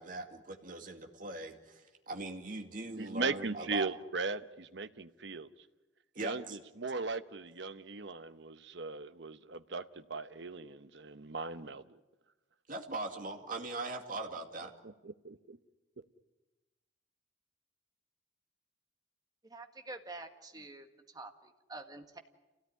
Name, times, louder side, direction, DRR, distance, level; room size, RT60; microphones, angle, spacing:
voice 1, 0.0-3.9 6.1-6.6 12.7-14.7, right 2 dB, 45° right, 3 dB, 2.4 m, -40 dB
voice 2, 3.0-5.5 6.2-12.0 15.0-15.6, right 4 dB, 65° right, 11 dB, 1.0 m, -38 dB
voice 3, 19.4-22.2, right 2 dB, 20° right, 5 dB, 1.7 m, -48 dB
28.0 x 17.5 x 10.0 m, 1.1 s
head